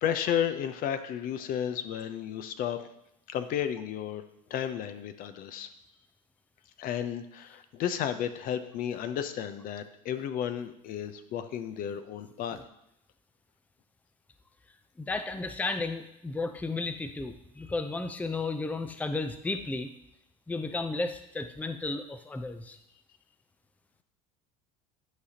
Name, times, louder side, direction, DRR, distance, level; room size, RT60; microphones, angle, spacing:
voice 1, 0.0-2.9 3.3-4.2 4.5-5.7 6.8-12.6, left 9 dB, 50° left, 10 dB, 0.7 m, -33 dB
voice 2, 15.0-19.9 20.5-22.8, left 3 dB, 10° left, 8 dB, 0.5 m, -33 dB
11.0 x 5.0 x 2.8 m, 0.81 s
hypercardioid pair, 85°, 18 cm